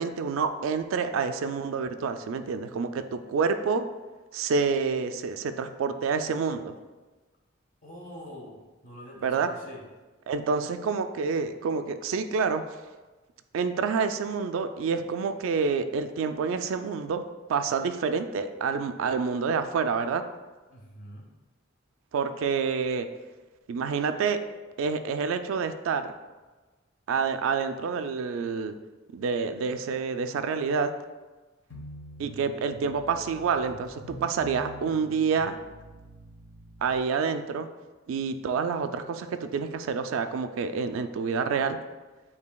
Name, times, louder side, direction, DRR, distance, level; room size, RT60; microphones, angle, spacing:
voice 1, 0.0-3.9 4.3-6.7 9.2-9.5 10.3-12.6 13.5-17.2 17.5-20.2 22.1-23.1 23.7-24.4 24.8-26.1 27.1-28.7 29.1-30.9 32.2-35.6 36.8-37.7 38.1-41.8, right 5 dB, 75° right, 9 dB, 0.3 m, -28 dB
voice 2, 7.8-9.8 20.7-21.3, equal, 40° left, -1 dB, 0.9 m, -45 dB
sound 1, 31.7-37.0, right 1 dB, 70° left, 1.1 m, -46 dB
8.1 x 2.7 x 2.3 m, 1.2 s
head